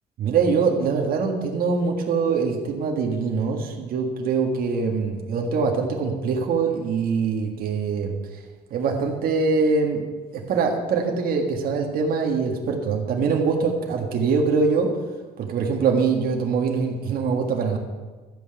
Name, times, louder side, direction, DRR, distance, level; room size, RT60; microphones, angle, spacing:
voice 1, 0.2-8.1 8.7-10.0 10.3-14.9 15.4-17.8, right 5 dB, 60° right, 2 dB, 1.7 m, -23 dB
12.5 x 5.5 x 7.9 m, 1.3 s
cardioid pair, 110°, 17 cm